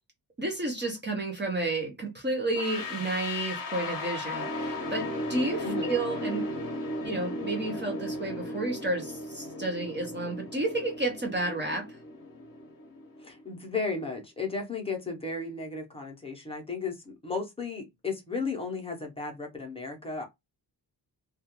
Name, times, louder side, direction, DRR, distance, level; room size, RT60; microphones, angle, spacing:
voice 1, 0.4-6.5 7.0-12.0, right 2 dB, 25° right, 0.5 m, -31 dB
sound 1, 2.5-13.4, left 1 dB, 50° left, 0.7 m, -36 dB
voice 2, 5.6-5.9 13.2-20.2, left 4 dB, 15° left, 0.6 m, -34 dB
2.3 x 2.3 x 2.8 m
wide cardioid pair, 175°, 43 cm